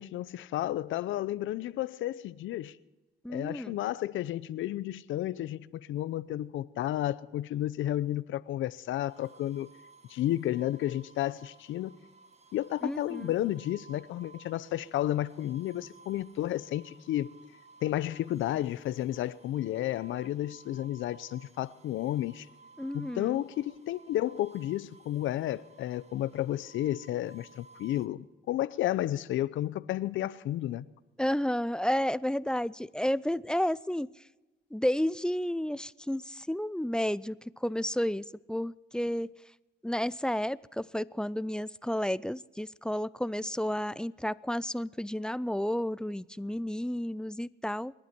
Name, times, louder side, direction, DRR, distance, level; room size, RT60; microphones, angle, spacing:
voice 1, 0.0-2.8 3.3-9.7 10.1-12.0 12.5-17.3 17.8-22.5 22.9-30.8, left 13 dB, 80° left, 0.7 m, -32 dB
voice 2, 3.2-3.8 12.8-13.3 22.8-23.4 31.2-34.1 34.7-39.3 39.8-47.9, equal, 5° left, 0.4 m, -31 dB
sound 1, 9.1-28.1, right 3 dB, 30° right, 2.0 m, -57 dB
27.5 x 11.5 x 4.5 m
cardioid pair, 90°, 20 cm